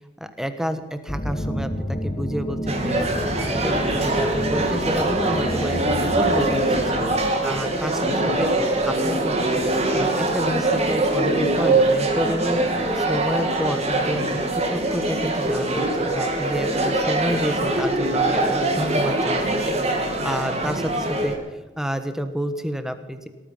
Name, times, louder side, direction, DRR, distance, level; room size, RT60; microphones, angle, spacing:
voice 1, 0.2-3.1 3.3-7.0 7.4-8.5 8.8-9.6 9.9-12.6 12.9-21.4 21.8-23.3, equal, 5° right, 9 dB, 1.3 m, -29 dB
sound 1, 1.1-7.2, equal, 30° left, 1.7 m, -30 dB
sound 2, 2.7-21.4, right 2 dB, 35° right, 2.8 m, -23 dB
18.5 x 14.0 x 5.6 m, 1.2 s
head